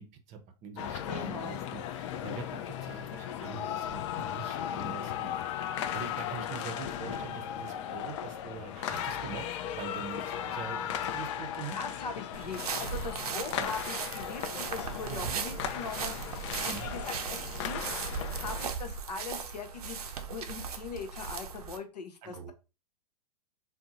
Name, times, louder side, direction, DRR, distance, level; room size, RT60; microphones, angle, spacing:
voice 1, 0.0-5.3 5.9-11.8 13.3-13.7 15.1-15.4 16.6-16.9 22.2-22.5, right 6 dB, 35° right, 6 dB, 0.6 m, -44 dB
sound 1, 0.8-18.7, left 10 dB, 50° left, 0.4 m, -37 dB
voice 2, 1.1-1.6 11.7-17.9 18.4-22.5, left 5 dB, 85° left, 4 dB, 0.8 m, -41 dB
sound 2, 12.3-21.8, right 6 dB, 70° right, 0.5 m, -37 dB
2.7 x 2.1 x 3.8 m, 0.30 s
hypercardioid pair, 110°, 20 cm